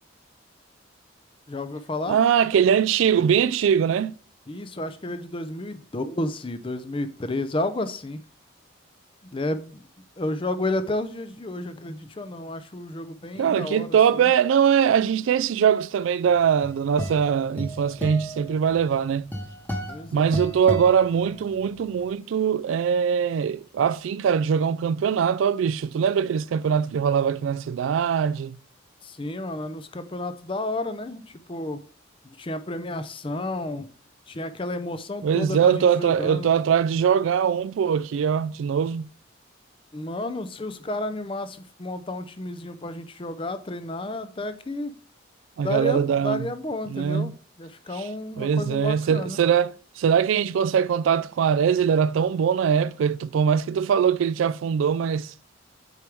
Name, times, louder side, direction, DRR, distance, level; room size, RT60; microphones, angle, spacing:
voice 1, 1.5-2.2 4.5-8.2 9.2-9.9 10.2-14.3 19.9-20.5 29.0-31.8 32.2-33.9 34.3-36.5 39.9-44.9 45.6-47.3 47.6-49.4, left 1 dB, 25° left, 0.5 m, -31 dB
voice 2, 2.1-4.1 13.4-19.3 20.1-28.6 35.2-39.1 45.6-46.5 46.9-47.3 48.4-55.3, right 7 dB, 70° right, 0.3 m, -22 dB
sound 1, 16.4-21.8, right 1 dB, 10° left, 1.1 m, -34 dB
8.2 x 4.6 x 3.5 m
head